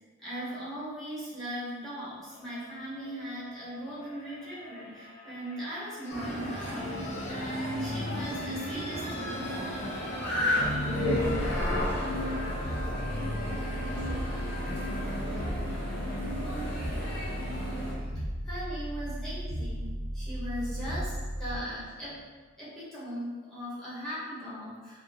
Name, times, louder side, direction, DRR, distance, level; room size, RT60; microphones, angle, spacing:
voice 1, 0.2-9.5 17.9-22.2 22.6-25.0, equal, ahead, -10 dB, 1.1 m, -39 dB
sound 1, 2.3-16.2 17.5-17.6, left 2 dB, 30° left, 0.4 m, -44 dB
sound 2, 6.1-17.9, equal, 55° left, 1.4 m, -34 dB
sound 3, 10.6-21.7, equal, 80° left, 0.7 m, -34 dB
voice 2, 10.8-12.3 12.8-16.0 20.6-20.8, right 1 dB, 40° right, -4 dB, 0.3 m, -47 dB
3.8 x 2.4 x 2.6 m, 1.4 s
head